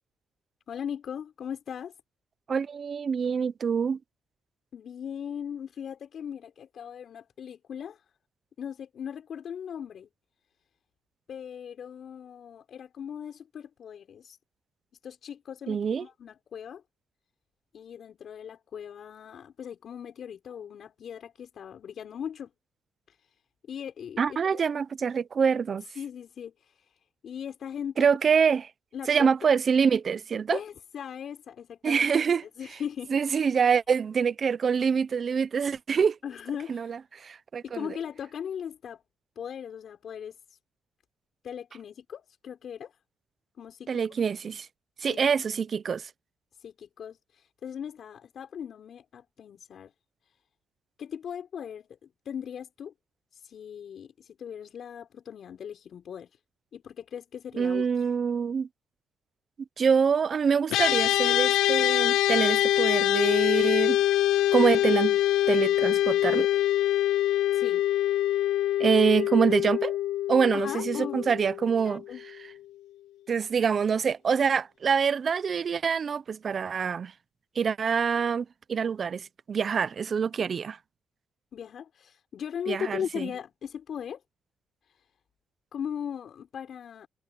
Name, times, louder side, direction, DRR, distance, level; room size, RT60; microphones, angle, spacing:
voice 1, 0.7-1.9 4.7-8.0 8.6-10.1 11.3-14.4 15.0-16.8 17.7-22.5 23.1-23.3 23.7-24.6 25.9-27.0 27.2-28.1 28.9-29.5 30.5-32.2 32.6-33.2 36.2-37.0 37.6-39.0 39.4-40.6 41.4-43.0 43.6-44.0 45.0-45.3 46.6-49.9 51.0-52.9 53.3-56.4 56.7-58.1 67.5-67.9 70.5-71.3 71.8-72.2 81.5-84.2 84.9-85.1 85.7-87.1, left 8 dB, 60° left, 5.9 m, -39 dB
voice 2, 2.5-4.0 15.7-16.0 24.2-25.8 28.0-28.7 29.1-30.6 31.8-32.4 33.1-36.2 36.7-37.9 43.9-44.7 45.0-46.1 57.6-58.7 59.8-64.0 64.5-65.2 65.5-66.5 68.8-70.0 70.3-72.0 73.3-77.1 77.6-80.8 82.7-83.3, right 6 dB, 45° right, 0.8 m, -25 dB
sound 1, 60.7-72.2, left 13 dB, 85° left, 0.7 m, -24 dB
cardioid pair, 90°, 0 cm